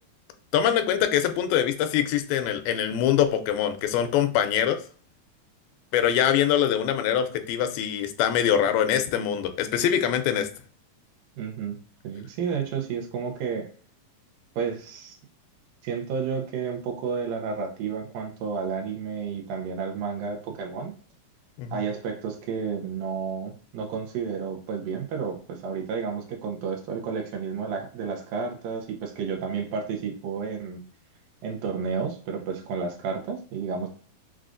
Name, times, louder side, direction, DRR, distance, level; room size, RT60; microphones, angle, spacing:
voice 1, 0.5-4.8 5.9-10.5 21.6-21.8, left 9 dB, 90° left, 8 dB, 2.4 m, -23 dB
voice 2, 11.4-11.8 12.0-13.7 14.6-15.2 15.8-20.9 21.7-30.8 31.4-33.9, right 6 dB, 75° right, 1 dB, 2.2 m, -31 dB
6.2 x 2.3 x 2.4 m, 0.43 s
omnidirectional pair, 4.2 m